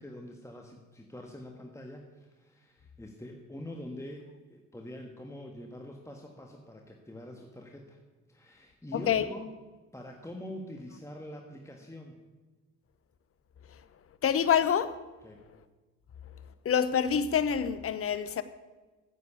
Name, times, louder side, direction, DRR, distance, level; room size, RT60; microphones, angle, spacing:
voice 1, 0.0-8.0 8.3-9.5 9.9-12.2 15.2-15.4, left 1 dB, 10° left, 2 dB, 1.6 m, -45 dB
voice 2, 8.9-9.2 14.2-14.9 16.6-18.4, left 8 dB, 35° left, 14 dB, 0.9 m, -26 dB
9.8 x 8.2 x 8.3 m, 1.3 s
supercardioid pair, 60°, 37 cm